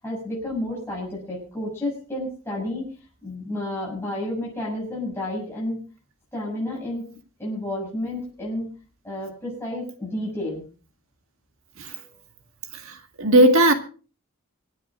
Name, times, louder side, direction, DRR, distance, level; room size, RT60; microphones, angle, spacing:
voice 1, 0.0-2.9 3.2-5.8 6.3-7.0 7.4-8.7 9.0-10.7 11.9-12.2, left 1 dB, 10° left, 6.9 m, -31 dB
voice 2, 12.8-13.7, right 1 dB, 60° right, 2.0 m, -17 dB
25.5 x 9.6 x 3.8 m
head